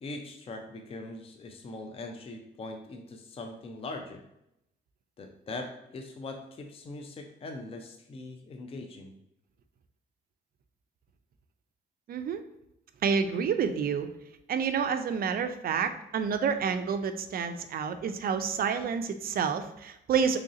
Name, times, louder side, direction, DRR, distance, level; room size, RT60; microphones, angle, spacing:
voice 1, 0.0-4.2 5.2-9.2, left 2 dB, 30° left, 4 dB, 0.4 m, -41 dB
voice 2, 12.1-12.4 13.0-14.1 14.5-20.4, right 6 dB, 50° right, 9 dB, 0.4 m, -29 dB
3.2 x 2.6 x 3.7 m, 0.82 s
cardioid pair, 90°, 20 cm